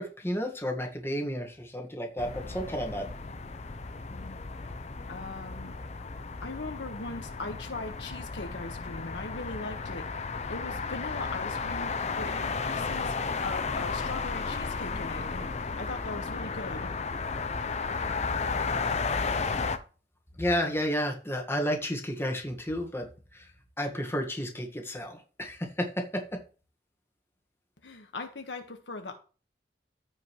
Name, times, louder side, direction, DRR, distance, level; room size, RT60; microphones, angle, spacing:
voice 1, 0.0-3.1 20.4-23.0 23.3-23.5 23.8-26.4, equal, 15° left, 1.7 m, -31 dB
sound 1, 2.2-19.8, left 4 dB, 40° left, 0.6 m, -33 dB
voice 2, 5.1-5.7 6.0-6.1 6.4-10.1 10.5-13.2 13.4-16.9 27.8-29.2, left 3 dB, 90° left, 1.5 m, -40 dB
14.5 x 5.3 x 3.2 m
head